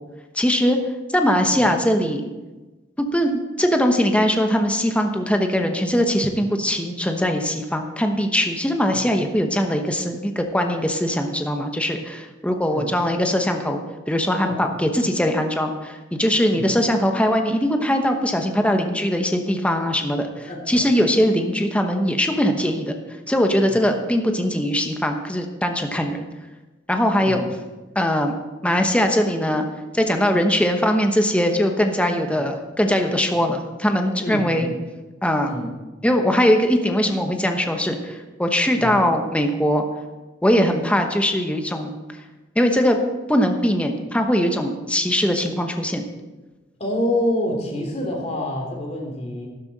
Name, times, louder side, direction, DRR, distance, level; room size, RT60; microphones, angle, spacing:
voice 1, 0.3-0.8 1.1-2.2 3.1-13.8 14.1-23.0 23.3-26.3 26.9-27.4 27.9-29.6 29.9-34.7 35.2-35.5 36.0-39.8 40.4-41.9 42.5-43.0 43.3-46.1, equal, 5° left, 4 dB, 1.0 m, -21 dB
voice 2, 14.4-14.8 16.5-16.7 20.5-20.8 23.7-23.8 27.2-27.4 34.2-34.7 35.4-35.7 38.7-38.9 46.8-49.5, left 1 dB, 35° left, 0 dB, 2.8 m, -27 dB
12.5 x 11.5 x 4.1 m, 1.2 s
head